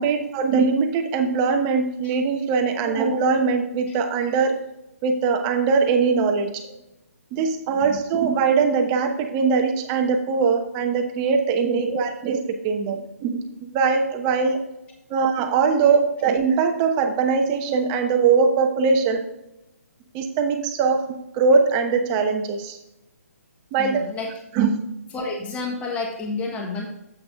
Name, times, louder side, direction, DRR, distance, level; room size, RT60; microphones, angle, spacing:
voice 1, 0.0-4.6 5.0-6.7 7.3-13.4 13.7-14.6 15.1-19.2 20.1-21.1 21.3-22.8 23.7-24.0 24.5-24.7, right 5 dB, 25° right, 5 dB, 1.0 m, -21 dB
voice 2, 23.8-24.3 25.1-26.9, left 3 dB, 15° left, 0 dB, 1.4 m, -30 dB
8.1 x 5.9 x 3.7 m, 0.86 s
figure-of-eight pair, 140°, 8 cm